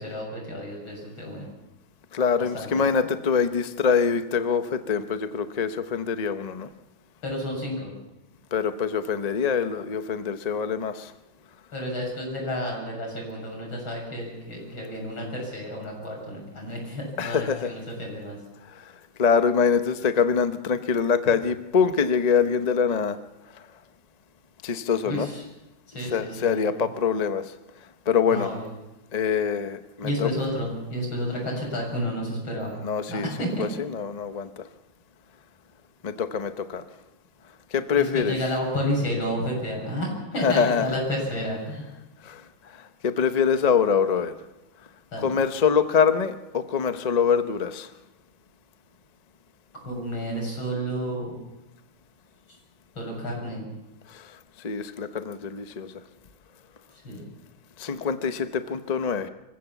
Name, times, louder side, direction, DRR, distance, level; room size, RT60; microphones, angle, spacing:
voice 1, 0.0-1.5 2.4-2.7 7.2-7.9 11.7-18.4 25.1-25.4 25.9-26.7 28.3-28.7 30.0-32.7 33.1-33.7 38.0-41.9 45.1-45.3 49.8-51.4 52.5-52.6 53.0-53.7 56.9-57.3, equal, 80° left, 0 dB, 7.7 m, -31 dB
voice 2, 2.1-6.7 8.5-11.1 17.2-17.7 18.7-18.8 19.2-23.2 24.6-25.3 26.1-27.5 28.1-28.6 29.1-30.3 32.8-33.3 33.6-34.6 36.0-36.8 37.7-38.3 40.4-40.9 42.2-42.4 43.0-44.3 45.2-47.9 54.1-54.3 54.6-55.9 57.8-59.3, left 6 dB, 40° left, 10 dB, 0.5 m, -24 dB
24.5 x 15.5 x 7.2 m, 1.0 s
omnidirectional pair, 2.2 m